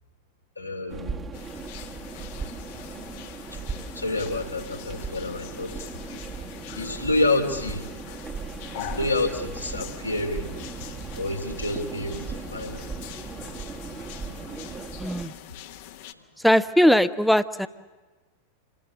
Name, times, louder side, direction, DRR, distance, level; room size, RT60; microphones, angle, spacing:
voice 1, 0.6-1.2 3.5-3.6 3.9-5.9 6.7-7.9 8.7-10.5 11.2-12.8, left 2 dB, 85° left, 2 dB, 2.8 m, -28 dB
sound 1, 0.9-15.3, right 4 dB, 20° right, 1.4 m, -37 dB
sound 2, 1.3-16.1, left 12 dB, 50° left, 1.3 m, -43 dB
voice 2, 15.0-15.3 16.4-17.7, equal, ahead, 13 dB, 0.8 m, -20 dB
27.0 x 20.0 x 7.2 m, 1.2 s
figure-of-eight pair, 90°, 0 cm